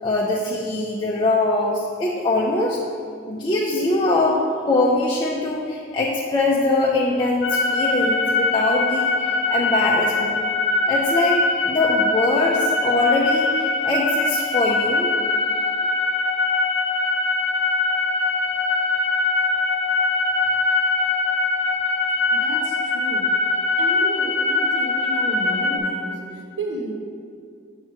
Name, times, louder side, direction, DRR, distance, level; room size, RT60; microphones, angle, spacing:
voice 1, 0.0-2.8 3.3-10.5 10.9-15.1, left 2 dB, 25° left, -5 dB, 0.5 m, -22 dB
sound 1, 7.4-25.8, left 3 dB, 70° left, 0.7 m, -22 dB
voice 2, 22.3-23.3 23.8-26.9, right 1 dB, 75° right, 0 dB, 0.9 m, -32 dB
7.3 x 3.0 x 6.1 m, 2.2 s
head